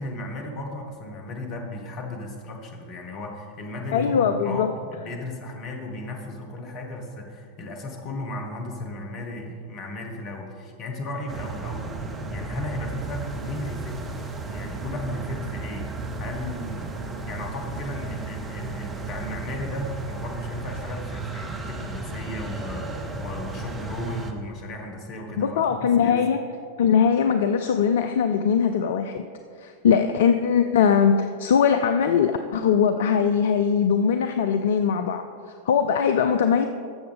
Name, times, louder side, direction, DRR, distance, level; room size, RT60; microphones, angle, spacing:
voice 1, 0.0-11.9 12.3-13.9 14.4-16.9 17.3-26.2, left 1 dB, 35° left, 2 dB, 1.5 m, -35 dB
voice 2, 3.9-4.7 25.4-26.4 26.8-29.2 29.6-35.2 35.7-36.7, left 7 dB, 60° left, 8 dB, 0.4 m, -21 dB
sound 1, 11.3-24.3, right 3 dB, 20° right, 0.9 m, -34 dB
14.0 x 6.8 x 3.6 m, 2.3 s
figure-of-eight pair, 90°, 0 cm